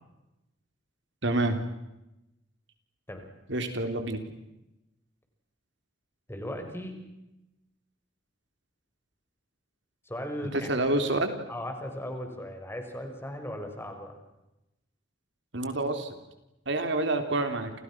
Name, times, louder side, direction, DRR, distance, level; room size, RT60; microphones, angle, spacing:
voice 1, 1.2-1.6 3.5-4.2 10.5-11.3 15.5-16.2 16.7-17.7, right 2 dB, 65° right, 7 dB, 3.5 m, -27 dB
voice 2, 6.3-7.0 10.1-10.7 11.5-14.2, left 1 dB, 15° left, 5 dB, 5.7 m, -37 dB
29.5 x 29.5 x 6.2 m, 0.94 s
head